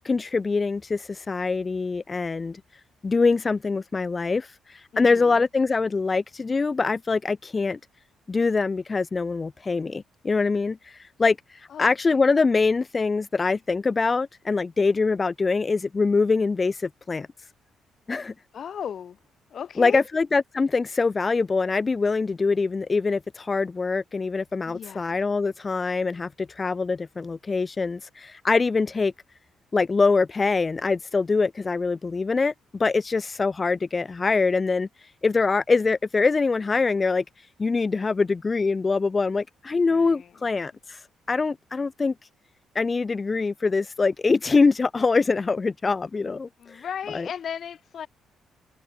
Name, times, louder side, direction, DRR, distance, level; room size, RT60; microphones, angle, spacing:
voice 1, 0.0-2.6 3.0-7.8 8.3-17.3 18.1-18.3 19.8-29.1 29.7-34.9 35.2-37.2 37.6-41.0 41.3-42.1 42.7-46.8 47.1-47.3, left 4 dB, 30° left, 0.7 m, -24 dB
voice 2, 4.9-5.4 11.7-12.2 18.5-19.2 19.5-20.0 24.6-25.1 39.7-40.4 46.6-48.1, left 8 dB, 55° left, 1.3 m, -36 dB
cardioid pair, 90°, 0 cm